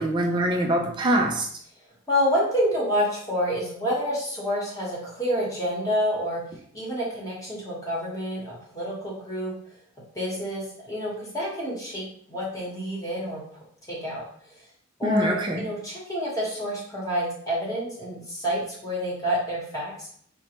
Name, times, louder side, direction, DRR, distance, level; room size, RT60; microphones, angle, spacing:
voice 1, 0.0-1.5 15.0-15.6, right 1 dB, 20° right, 1 dB, 0.5 m, -24 dB
voice 2, 2.1-6.4 6.7-9.5 10.1-13.4 13.9-14.2 15.0-20.1, equal, 15° left, -5 dB, 1.1 m, -28 dB
5.3 x 2.2 x 2.9 m, 0.62 s
head